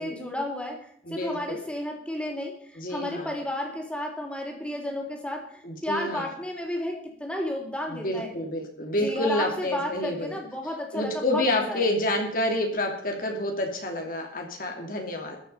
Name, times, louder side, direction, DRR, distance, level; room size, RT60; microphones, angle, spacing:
voice 1, 0.0-8.3 9.0-11.9, left 1 dB, 5° left, 1 dB, 3.7 m, -32 dB
voice 2, 1.1-1.6 2.8-3.3 5.6-6.3 7.9-10.4 10.9-15.4, left 1 dB, 50° left, 2 dB, 2.7 m, -28 dB
14.5 x 11.0 x 5.6 m, 0.65 s
head